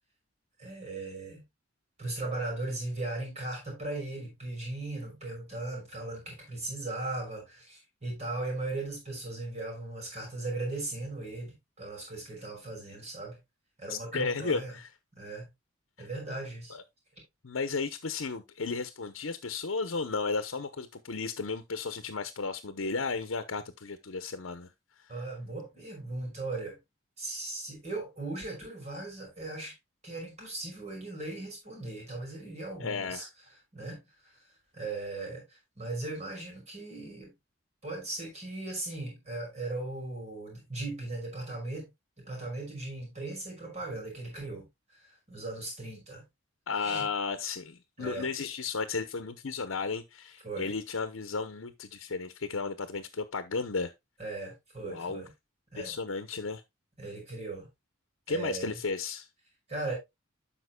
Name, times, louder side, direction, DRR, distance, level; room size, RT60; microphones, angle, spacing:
voice 1, 0.6-1.4 2.0-13.4 13.8-14.7 15.2-15.5 16.0-16.8 25.1-26.8 27.2-29.7 30.0-33.3 33.7-34.4 34.7-37.3 37.8-41.9 42.2-44.6 44.9-46.2 46.7-47.1 48.0-48.3 50.4-50.7 54.2-55.3 55.7-55.9 57.0-57.7 58.3-58.8 59.7-59.9, right 2 dB, 35° right, 5.5 m, -38 dB
voice 2, 13.9-14.9 16.0-16.1 16.7-16.8 17.4-24.7 32.8-33.3 46.7-53.9 54.8-55.2 55.7-56.6 58.3-59.3, left 4 dB, 90° left, 0.8 m, -34 dB
12.5 x 5.8 x 2.2 m
head